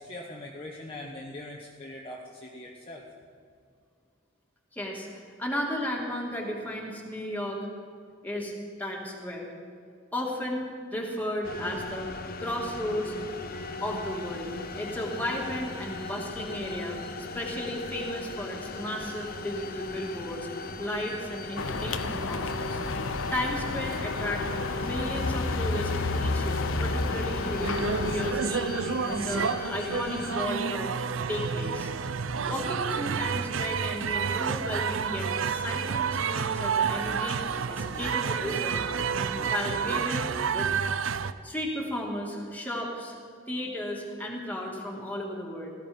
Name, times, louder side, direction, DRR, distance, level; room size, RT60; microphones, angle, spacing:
voice 1, 0.0-3.0, left 1 dB, 30° left, -2 dB, 1.1 m, -41 dB
voice 2, 4.7-5.1 5.4-7.7 8.2-8.5 8.8-9.5 10.1-12.1 12.4-13.1 13.8-14.5 14.8-20.5 20.8-22.8 23.3-24.5 24.7-28.7 29.1-30.9 31.3-31.9 32.5-37.4 37.7-40.7 41.4-45.7, equal, 10° left, -2 dB, 2.5 m, -34 dB
sound 1, 11.4-30.5, left 3 dB, 50° left, 0.9 m, -38 dB
sound 2, 21.6-28.3, left 3 dB, 75° left, 0.7 m, -31 dB
sound 3, 27.6-41.3, right 6 dB, 75° right, 0.6 m, -30 dB
17.5 x 14.5 x 5.3 m, 2.2 s
head